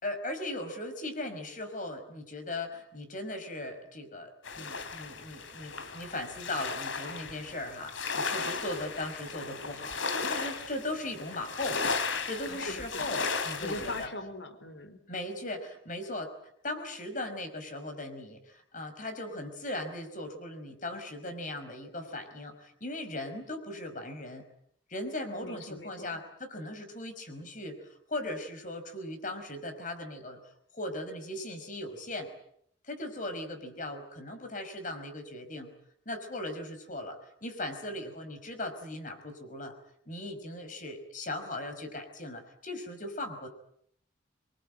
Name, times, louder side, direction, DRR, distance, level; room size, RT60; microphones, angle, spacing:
voice 1, 0.0-4.3 4.6-14.1 15.1-16.3 16.6-24.4 24.9-30.4 30.7-32.3 32.8-35.7 36.1-39.7 40.1-43.5, left 1 dB, 40° left, 7 dB, 5.3 m, -38 dB
sound 1, 4.4-14.1, left 4 dB, 80° left, 3.3 m, -35 dB
voice 2, 12.5-13.3 13.6-15.0 25.4-26.2, left 2 dB, 65° left, 10 dB, 4.1 m, -41 dB
26.0 x 23.0 x 9.1 m, 0.69 s
head